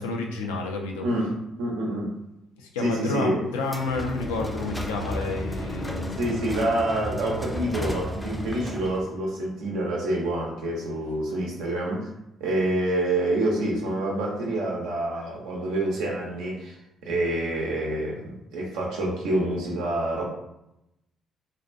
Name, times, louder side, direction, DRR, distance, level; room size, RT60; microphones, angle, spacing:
voice 1, 0.0-1.1 2.6-6.4, left 3 dB, 90° left, 2 dB, 0.3 m, -30 dB
voice 2, 1.0-2.1 2.8-3.5 6.2-12.1 12.4-16.8 17.0-20.2, right 1 dB, 80° right, -2 dB, 0.6 m, -27 dB
sound 1, 3.6-9.1, left 1 dB, 15° left, 0.4 m, -33 dB
2.5 x 2.1 x 2.5 m, 0.85 s
hypercardioid pair, 50°, 0 cm